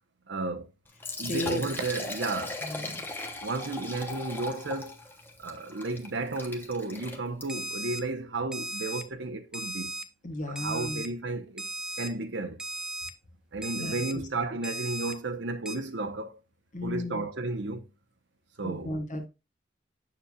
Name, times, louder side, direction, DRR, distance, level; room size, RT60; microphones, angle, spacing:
voice 1, 0.3-0.7 1.2-2.6 3.4-5.0 5.4-10.0 10.5-11.7 12.0-12.6 13.5-16.4 16.8-17.9 18.6-18.9, right 3 dB, 75° right, 0.9 m, -33 dB
Liquid, 0.9-7.7, left 2 dB, 10° left, 1.0 m, -39 dB
voice 2, 1.2-1.6 2.6-3.0 10.2-11.0 13.8-13.9 16.7-17.3 18.6-19.3, left 1 dB, 45° left, 1.5 m, -34 dB
Alarm, 7.5-8.0 8.5-9.0 9.5-10.0 10.6-11.1 11.6-12.1 12.6-13.1 13.6-14.1 14.6-15.1 15.7-15.8, right 2 dB, 5° right, 0.5 m, -36 dB
7.1 x 6.8 x 2.3 m
head